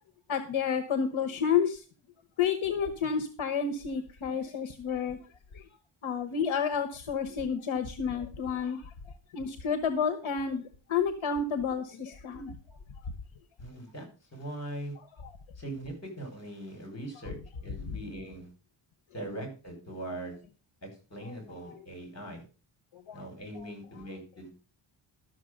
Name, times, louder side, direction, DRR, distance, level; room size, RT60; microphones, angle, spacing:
voice 1, 0.3-1.8 2.4-5.2 5.5-5.6 6.0-8.8 9.3-12.5 15.2-15.3 17.9-18.0 21.2-21.6 23.1-23.2, left 6 dB, 70° left, 8 dB, 1.3 m, -30 dB
voice 2, 13.6-14.0 14.3-14.9 15.6-18.5 19.1-20.4 20.8-22.4 23.1-24.5, right 1 dB, 30° left, 4 dB, 5.5 m, -41 dB
12.5 x 6.6 x 6.5 m, 0.35 s
wide cardioid pair, 155°, 49 cm